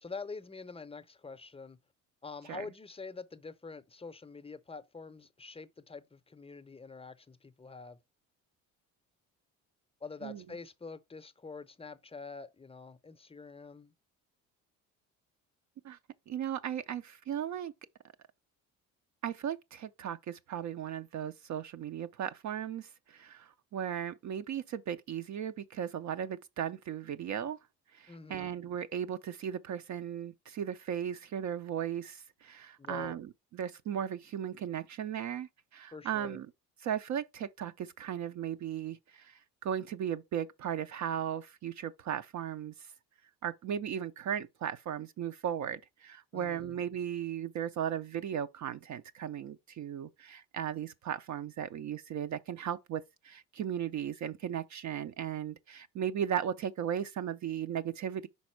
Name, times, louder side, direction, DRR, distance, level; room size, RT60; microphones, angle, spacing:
voice 1, 0.0-1.8 2.2-8.0 10.0-13.9 28.1-28.5 32.8-33.1 35.9-36.4 46.3-46.8, left 4 dB, 15° left, 0.6 m, -46 dB
voice 2, 16.3-17.7 19.2-27.6 27.9-36.5 36.8-42.9 43.4-58.3, right 9 dB, 45° right, 0.5 m, -36 dB
5.3 x 4.1 x 4.4 m
hypercardioid pair, 65°, 40 cm